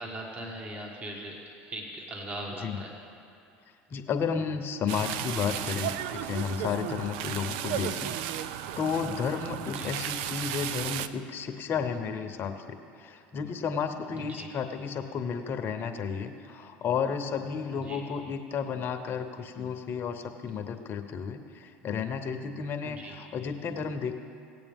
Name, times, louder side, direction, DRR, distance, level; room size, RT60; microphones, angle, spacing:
voice 1, 0.0-3.0 9.6-9.9 14.1-14.5 17.7-18.0 22.8-23.2, right 1 dB, 25° right, 0 dB, 1.7 m, -40 dB
voice 2, 3.9-8.1 8.8-24.1, left 6 dB, 45° left, 7 dB, 0.9 m, -32 dB
sound 1, 4.9-11.1, right 11 dB, 75° right, 0.4 m, -34 dB
17.5 x 8.4 x 3.6 m, 2.6 s
supercardioid pair, 90°, 5 cm